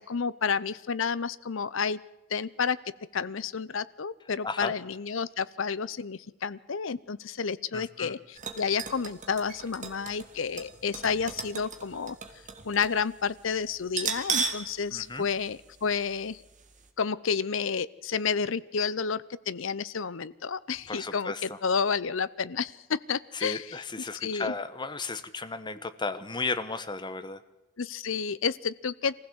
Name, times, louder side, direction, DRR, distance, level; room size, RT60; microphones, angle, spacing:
voice 1, 0.0-2.0 2.3-2.8 3.1-12.2 12.6-16.4 17.0-23.8 24.2-24.5 27.8-29.2, left 5 dB, 65° left, 17 dB, 0.7 m, -30 dB
voice 2, 7.7-8.1 14.9-15.3 20.9-21.6 23.3-27.4, left 3 dB, 20° left, 12 dB, 1.0 m, -34 dB
sound 1, 8.4-13.0 13.3-13.4 13.9-14.7 15.0-15.1 15.9-16.1 16.5-16.6, right 5 dB, 35° right, 2.0 m, -35 dB
24.0 x 15.5 x 7.9 m, 1.0 s
head